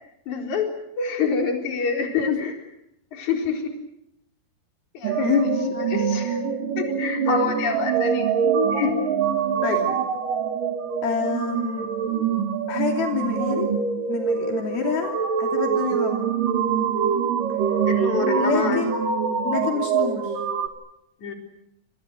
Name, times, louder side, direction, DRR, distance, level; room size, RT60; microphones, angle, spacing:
voice 1, 0.3-2.5 3.1-3.7 4.9-5.2 5.9-6.4 6.8-8.4 8.7-8.9 17.9-18.8 21.2-21.3, left 5 dB, 50° left, 3 dB, 5.4 m, -27 dB
sound 1, 5.0-20.7, right 6 dB, 65° right, 3.9 m, -24 dB
voice 2, 5.2-5.7 8.8-8.9 9.6-10.0 11.0-11.9 12.7-13.7 14.1-16.3 18.4-19.0 19.4-20.4, left 6 dB, 75° left, 2 dB, 4.9 m, -26 dB
29.0 x 27.0 x 6.2 m, 0.80 s
omnidirectional pair, 4.3 m